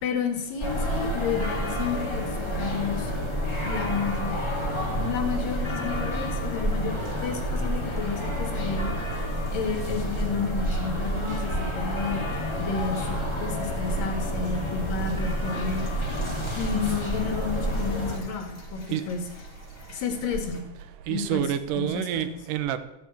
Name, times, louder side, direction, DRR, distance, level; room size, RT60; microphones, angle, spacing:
voice 1, 0.0-2.3 2.5-3.1 3.6-4.4 5.0-8.9 9.5-12.2 12.6-15.9 16.5-19.2 19.9-20.6 21.1-21.5 21.8-22.3, left 5 dB, 90° left, 6 dB, 3.7 m, -31 dB
sound 1, 0.6-18.2, equal, 10° left, 1.7 m, -29 dB
sound 2, 15.6-20.6, equal, 25° left, 2.3 m, -45 dB
voice 2, 21.1-22.8, right 11 dB, 85° right, 11 dB, 2.5 m, -28 dB
14.0 x 7.7 x 8.8 m, 0.90 s
omnidirectional pair, 3.8 m